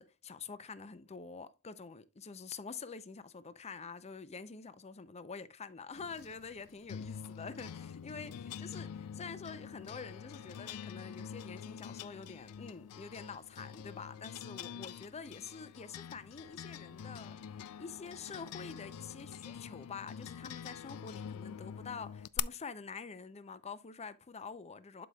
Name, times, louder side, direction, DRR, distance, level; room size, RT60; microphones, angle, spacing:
voice 1, 0.0-17.5 17.8-25.1, left 5 dB, 30° left, 0.5 m, -47 dB
sound 1, 5.9-22.4, left 8 dB, 80° left, 0.4 m, -45 dB
11.5 x 5.0 x 2.3 m
head